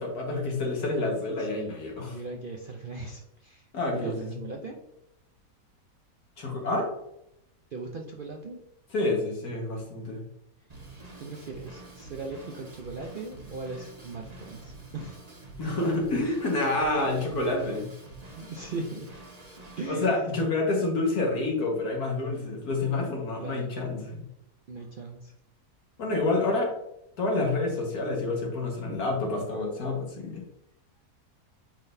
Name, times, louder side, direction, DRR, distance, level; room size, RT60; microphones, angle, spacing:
voice 1, 0.0-2.2 3.7-4.3 6.4-6.9 8.9-10.2 15.6-17.9 19.9-24.2 26.0-26.7 27.2-30.4, left 2 dB, 80° left, 0 dB, 2.1 m, -28 dB
voice 2, 1.4-1.8 2.0-4.8 7.7-8.6 11.2-15.2 18.3-19.1 19.8-20.3 23.4-23.8 24.7-25.3, right 3 dB, 60° right, 1 dB, 0.5 m, -39 dB
Drum kit / Drum, 10.7-19.9, right 2 dB, 30° right, 1.2 m, -47 dB
9.3 x 3.8 x 2.7 m, 0.81 s
omnidirectional pair, 1.6 m